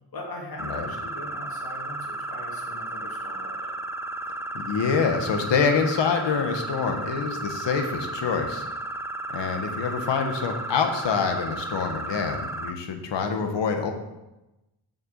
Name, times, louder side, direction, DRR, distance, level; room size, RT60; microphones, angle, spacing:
voice 1, 0.1-3.8, left 2 dB, 55° left, -1 dB, 2.4 m, -41 dB
sound 1, 0.6-12.7, right 2 dB, 5° right, 0.4 m, -34 dB
voice 2, 4.5-8.6 9.3-13.9, left 5 dB, 80° left, 5 dB, 1.4 m, -26 dB
6.9 x 6.8 x 7.4 m, 0.99 s
wide cardioid pair, 170°, 43 cm